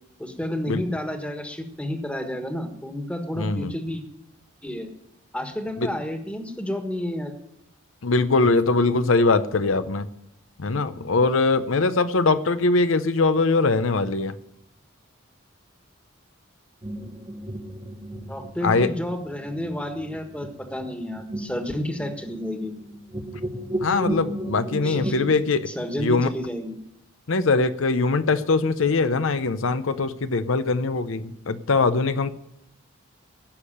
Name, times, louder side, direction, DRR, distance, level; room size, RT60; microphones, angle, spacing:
voice 1, 0.2-4.0 4.6-4.9 5.3-7.3 18.3-22.7 24.8-25.3 25.7-26.8, left 1 dB, 5° left, 5 dB, 1.5 m, -30 dB
voice 2, 3.4-3.7 5.8-5.9 8.0-10.1 10.6-14.4 18.6-18.9 23.8-25.7 26.0-26.3 27.3-32.3, left 3 dB, 80° left, 12 dB, 0.7 m, -22 dB
sound 1, 16.8-25.3, right 1 dB, 25° right, 1.2 m, -34 dB
15.5 x 6.7 x 9.9 m, 0.81 s
head